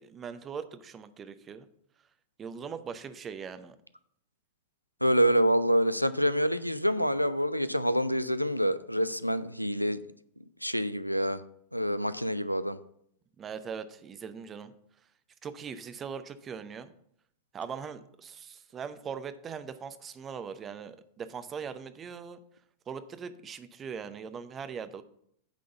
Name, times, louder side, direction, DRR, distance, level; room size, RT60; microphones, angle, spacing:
voice 1, 0.0-1.7 2.4-3.8 13.4-14.7 15.4-16.9 17.5-22.4 22.9-25.0, right 6 dB, 25° right, 11 dB, 0.7 m, -40 dB
voice 2, 5.0-10.0 10.6-11.4 11.7-12.8, equal, 90° left, 14 dB, 0.4 m, -26 dB
8.8 x 3.8 x 6.9 m, 0.69 s
figure-of-eight pair, 90°, 0 cm